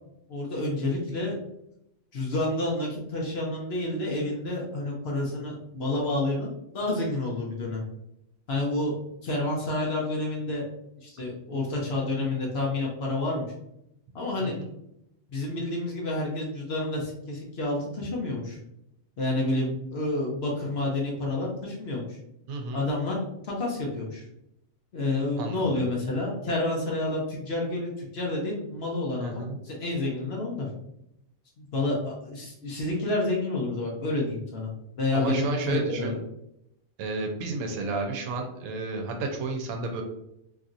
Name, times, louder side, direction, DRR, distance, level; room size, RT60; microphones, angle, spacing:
voice 1, 0.3-1.4 2.1-7.8 8.5-8.9 9.2-10.6 11.0-13.5 14.1-14.5 15.3-18.6 19.2-22.2 22.7-23.2 23.4-24.3 24.9-29.3 29.6-30.7 31.6-34.7 35.0-36.2, left 2 dB, 55° left, -2 dB, 0.8 m, -29 dB
voice 2, 14.4-14.7 22.5-22.9 25.4-25.9 29.2-29.6 35.1-36.2 37.0-40.0, right 3 dB, 85° right, 3 dB, 1.1 m, -31 dB
3.0 x 2.7 x 2.5 m, 0.81 s
omnidirectional pair, 1.5 m